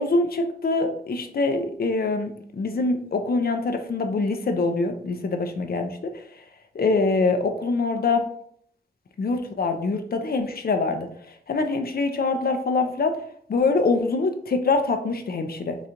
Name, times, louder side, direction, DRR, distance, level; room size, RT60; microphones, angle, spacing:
voice 1, 0.0-6.1 6.7-8.2 9.2-11.1 11.5-13.2 13.5-15.8, left 3 dB, 60° left, 6 dB, 0.6 m, -24 dB
4.0 x 2.4 x 4.4 m, 0.63 s
cardioid pair, 55°, 18 cm